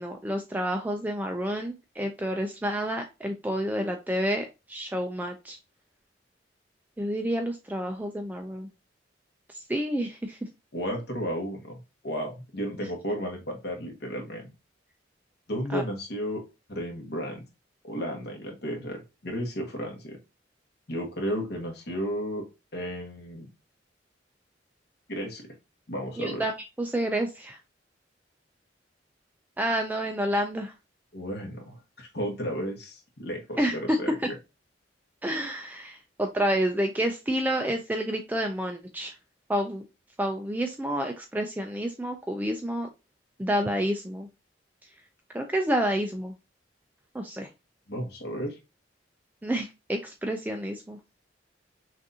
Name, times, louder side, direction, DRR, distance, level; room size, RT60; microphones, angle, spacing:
voice 1, 0.0-5.6 7.0-8.7 9.7-10.4 15.7-15.8 26.2-26.5 26.8-27.6 29.6-30.7 33.6-33.8 35.2-39.1 39.5-39.8 40.2-42.9 43.4-44.3 45.3-46.3 47.1-47.5 49.4-51.0, right 1 dB, 10° right, 4 dB, 0.4 m, -29 dB
voice 2, 10.7-14.5 15.5-16.4 16.7-17.5 17.8-20.2 20.9-22.4 22.7-23.5 25.1-25.5 25.9-26.4 31.1-34.1 47.9-48.6, equal, 60° left, 2 dB, 1.4 m, -33 dB
6.0 x 2.5 x 2.8 m, 0.26 s
head